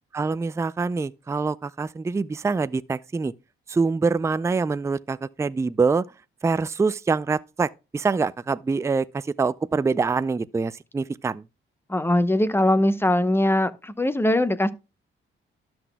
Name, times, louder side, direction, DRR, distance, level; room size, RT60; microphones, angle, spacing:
voice 1, 0.1-3.3 3.7-6.0 6.4-11.4, right 4 dB, 15° right, 0.4 m, -25 dB
voice 2, 11.9-14.7, left 1 dB, 10° left, 0.8 m, -21 dB
12.5 x 6.1 x 2.2 m
cardioid pair, 80°, 21 cm